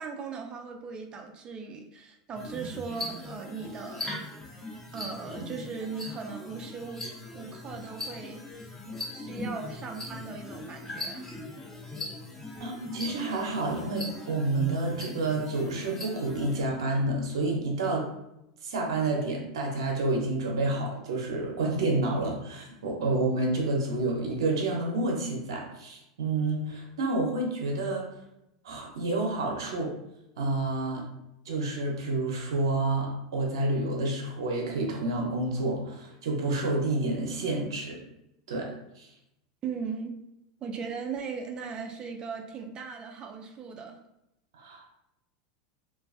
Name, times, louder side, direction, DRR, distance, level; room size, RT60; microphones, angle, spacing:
voice 1, 0.0-4.1 4.9-8.4 9.1-11.3 39.6-40.1 40.6-44.0, right 5 dB, 35° right, 3 dB, 0.4 m, -38 dB
sound 1, 2.3-16.6, left 1 dB, 15° left, 0.7 m, -40 dB
voice 2, 12.6-18.0 18.6-28.0 28.6-29.9 30.4-31.0 31.5-38.0 38.5-38.7 39.0-39.1 44.6-44.9, right 2 dB, 80° right, 0 dB, 0.6 m, -29 dB
2.3 x 2.3 x 2.4 m, 0.84 s
hypercardioid pair, 100°, 3 cm